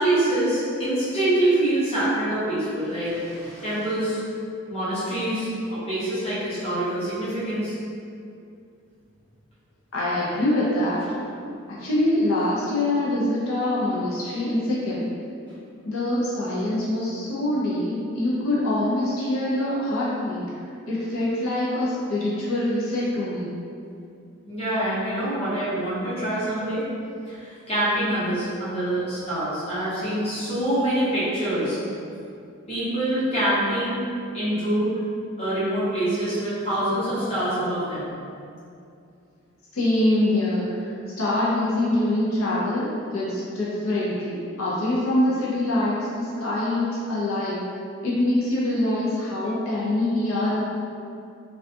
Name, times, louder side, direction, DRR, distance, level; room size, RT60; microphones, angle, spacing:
voice 1, 0.0-4.2 4.7-7.7 24.5-26.8 27.3-31.8 32.7-34.0 34.3-34.9 35.4-38.1, right 1 dB, 30° left, -12 dB, 0.8 m, -25 dB
voice 2, 9.9-11.0 11.7-15.1 15.9-20.5 20.9-23.5 39.7-47.6 48.0-50.6, left 1 dB, 80° left, -8 dB, 0.5 m, -24 dB
2.3 x 2.3 x 2.6 m, 2.5 s
head